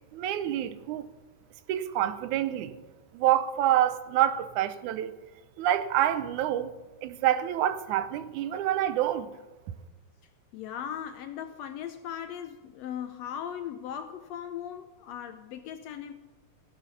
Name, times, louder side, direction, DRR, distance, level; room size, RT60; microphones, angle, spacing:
voice 1, 0.1-1.1 1.7-2.7 3.1-5.1 5.6-6.7 7.0-9.3, right 12 dB, 80° right, 2.1 m, -27 dB
voice 2, 10.5-16.1, left 9 dB, 75° left, 1.6 m, -38 dB
16.0 x 7.6 x 6.9 m
omnidirectional pair, 3.5 m